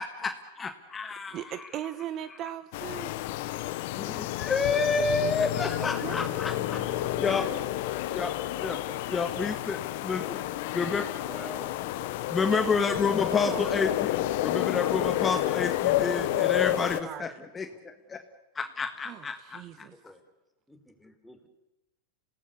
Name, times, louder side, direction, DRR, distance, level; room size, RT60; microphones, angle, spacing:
voice 1, 0.0-1.7 4.0-7.6 8.1-8.3 8.6-8.8 9.1-10.4 10.7-11.2 12.3-14.1 14.4-18.2 18.5-19.9, left 4 dB, 20° left, 7 dB, 1.7 m, -30 dB
voice 2, 1.3-3.1 5.2-5.3 5.8-7.7 12.5-12.8 13.5-13.8 15.0-15.7 16.1-17.3 19.0-19.9, right 11 dB, 40° right, 13 dB, 1.2 m, -40 dB
sound 1, 2.7-17.0, left 15 dB, 60° left, 1.2 m, -30 dB
voice 3, 11.2-11.8 19.8-20.2 20.7-21.5, left 1 dB, ahead, 5 dB, 4.0 m, -46 dB
27.0 x 18.0 x 8.3 m, 0.98 s
hypercardioid pair, 110°, 0 cm